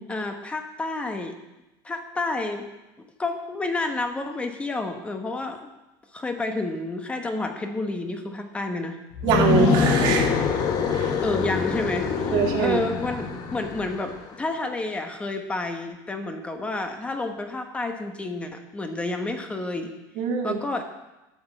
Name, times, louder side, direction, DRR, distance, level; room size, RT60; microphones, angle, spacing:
voice 1, 0.1-1.4 1.8-2.7 3.0-5.6 6.1-9.0 11.2-19.9 20.4-20.8, left 2 dB, 10° left, 5 dB, 1.1 m, -30 dB
sound 1, 9.1-14.2, left 5 dB, 40° left, 1.1 m, -24 dB
voice 2, 9.2-10.3 10.9-11.1 12.3-12.8 20.2-20.6, right 6 dB, 50° right, 1 dB, 1.9 m, -23 dB
12.0 x 6.2 x 7.8 m, 1.0 s
cardioid pair, 160°, 10 cm